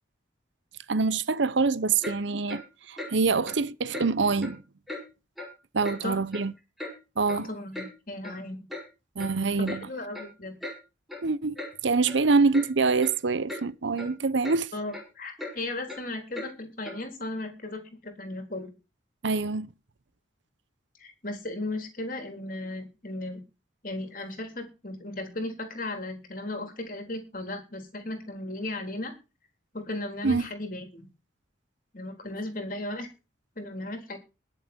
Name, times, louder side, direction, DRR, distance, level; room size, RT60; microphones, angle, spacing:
voice 1, 0.9-2.6 2.9-4.6 5.7-6.5 7.2-7.5 9.2-9.9 11.2-11.5 11.8-14.7 19.2-19.7 30.2-30.5, right 4 dB, 75° right, 0.8 m, -25 dB
Clock, 2.0-2.2 2.5-2.6 3.0-3.1 3.5-3.6 3.9-4.1 4.4-4.6 4.9-5.0 5.4-5.5 5.9-6.0 6.3-6.9 7.3-7.4 7.7-7.9 8.2-8.4 8.7-8.9 9.2-9.3 9.7-9.8 10.1-10.3 10.6-10.8 11.1-11.2 11.6-11.7 12.1-12.2 12.5-12.7 13.0-13.2 13.5-13.6 14.0-14.1 14.4-14.6 14.9-15.0 15.4-15.5 15.9-16.0 16.3-16.5 16.9-17.0, left 1 dB, ahead, 4.9 m, -38 dB
voice 2, 5.8-6.2 7.3-8.6 9.6-10.6 14.7-18.7 21.0-23.4 23.8-29.1 29.7-31.1 31.9-33.1 33.6-34.2, left 2 dB, 45° left, 3.7 m, -36 dB
21.5 x 7.2 x 4.4 m
head